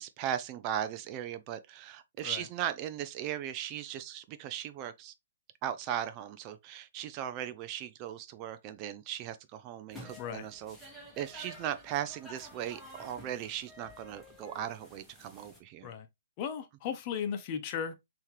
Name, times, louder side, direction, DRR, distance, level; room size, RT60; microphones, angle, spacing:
voice 1, 0.0-5.1 5.6-10.8 11.2-15.9, right 10 dB, 30° right, 0.5 m, -38 dB
sound 1, 9.9-15.6, equal, ahead, 1.5 m, -51 dB
voice 2, 16.4-18.0, left 7 dB, 35° left, 0.9 m, -36 dB
5.6 x 3.0 x 3.1 m
hypercardioid pair, 135°, 0 cm